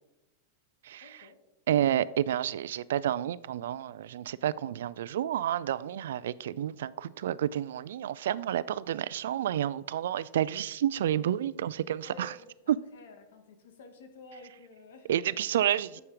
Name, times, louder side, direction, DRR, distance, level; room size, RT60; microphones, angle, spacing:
voice 1, 1.0-1.4 6.8-7.2 12.0-15.9, left 3 dB, 75° left, 2.1 m, -52 dB
voice 2, 1.7-12.3 12.7-12.8 15.1-16.0, right 11 dB, 80° right, 0.4 m, -30 dB
10.5 x 7.2 x 5.1 m
supercardioid pair, 170°, 0 cm